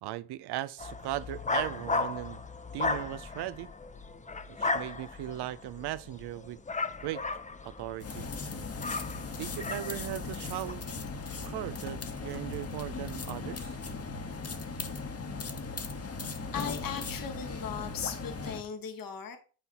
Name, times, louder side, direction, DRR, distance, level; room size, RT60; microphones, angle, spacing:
voice 1, 0.0-2.4 2.7-3.7 4.5-6.6 7.0-7.2 7.6-8.3 9.4-10.8 11.4-13.8, right 14 dB, 80° right, 0.6 m, -38 dB
sound 1, 0.8-10.7, left 3 dB, 20° left, 0.7 m, -36 dB
sound 2, 8.0-18.6, left 4 dB, 40° left, 1.2 m, -38 dB
voice 2, 16.5-19.4, left 7 dB, 60° left, 1.3 m, -37 dB
10.0 x 4.1 x 4.1 m
cardioid pair, 65°, 39 cm